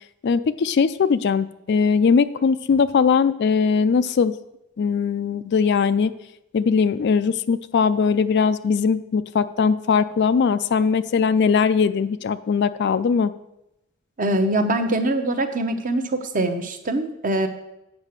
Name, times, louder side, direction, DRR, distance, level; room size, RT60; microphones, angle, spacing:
voice 1, 0.2-4.4 4.8-6.1 6.5-13.3, left 5 dB, 50° left, 13 dB, 0.3 m, -20 dB
voice 2, 14.2-17.5, right 1 dB, 35° right, 7 dB, 0.8 m, -23 dB
8.2 x 5.7 x 6.6 m, 0.88 s
head